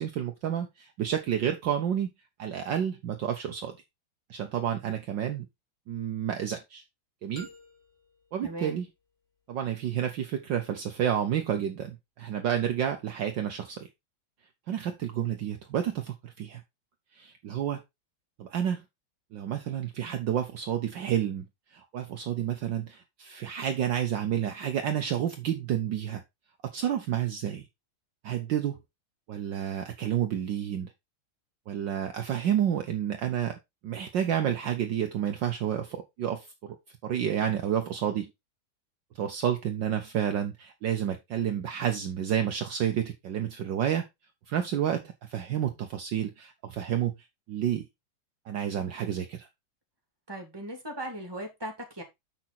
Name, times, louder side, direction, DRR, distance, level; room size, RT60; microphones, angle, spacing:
voice 1, 0.0-2.1 2.4-3.7 4.3-5.5 5.9-6.8 7.2-7.5 8.3-8.9 9.5-13.9 14.7-16.6 17.1-17.8 18.4-18.8 19.3-21.5 21.7-26.2 26.7-27.6 28.2-28.8 29.3-30.9 31.7-33.6 33.8-36.8 37.0-38.3 39.2-44.1 44.5-47.1 47.5-47.8 48.5-49.5, right 9 dB, 65° right, 1.5 m, -30 dB
sound 1, 7.4-9.4, left 1 dB, 35° left, 2.4 m, -53 dB
voice 2, 8.4-8.7 50.3-52.0, right 1 dB, 10° right, 2.7 m, -38 dB
7.3 x 6.1 x 4.1 m
omnidirectional pair, 2.3 m